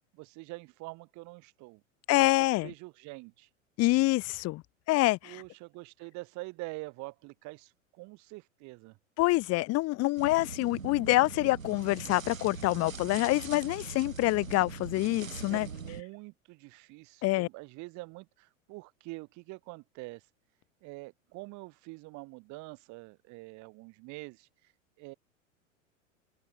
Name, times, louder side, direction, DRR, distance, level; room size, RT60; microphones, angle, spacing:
voice 1, 0.1-1.8 2.1-2.3 2.6-3.5 5.2-9.0 15.4-20.2 20.8-24.5 25.0-25.1, right 24 dB, 45° right, 5.7 m, -45 dB
voice 2, 2.1-2.7 3.8-4.6 4.9-5.4 9.2-15.7 17.2-17.5, left 20 dB, 40° left, 1.8 m, -26 dB
sound 1, 10.2-16.0, right 5 dB, 85° right, 2.6 m, -42 dB
open air
figure-of-eight pair, 90°, 39 cm